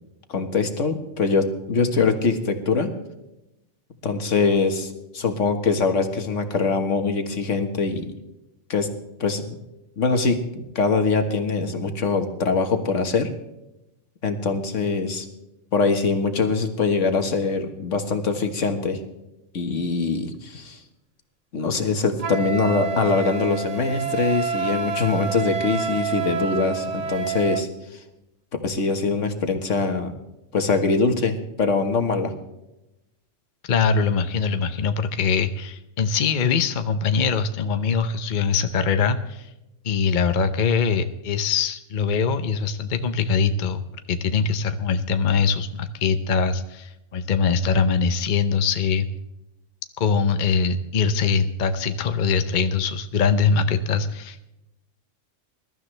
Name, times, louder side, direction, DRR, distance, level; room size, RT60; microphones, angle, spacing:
voice 1, 0.3-2.9 4.0-8.1 8.7-8.9 9.2-9.6 10.0-13.3 14.2-15.3 15.7-19.0 19.5-20.8 21.5-27.7 28.6-30.1 30.5-32.3, left 4 dB, 75° left, 6 dB, 1.8 m, -23 dB
Wind instrument woodwind instrument, 22.2-27.7, right 6 dB, 40° right, 0.7 m, -28 dB
voice 2, 33.7-39.5 39.8-43.8 44.1-49.1 50.0-54.4, left 5 dB, 45° left, 9 dB, 0.8 m, -22 dB
21.5 x 12.5 x 3.3 m, 0.92 s
omnidirectional pair, 1.3 m